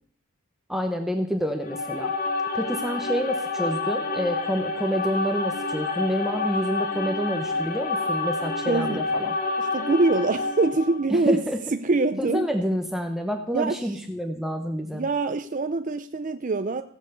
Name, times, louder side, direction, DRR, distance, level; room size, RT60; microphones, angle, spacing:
voice 1, 0.7-2.1 2.5-9.4 11.1-11.6 12.3-15.0, equal, ahead, 4 dB, 1.0 m, -28 dB
sound 1, 1.6-11.1, left 3 dB, 40° left, 2.0 m, -28 dB
voice 2, 8.7-9.0 9.6-11.4 11.7-12.5 13.5-14.0 14.9-16.8, right 3 dB, 35° right, 9 dB, 0.5 m, -24 dB
16.0 x 8.3 x 6.9 m, 0.62 s
head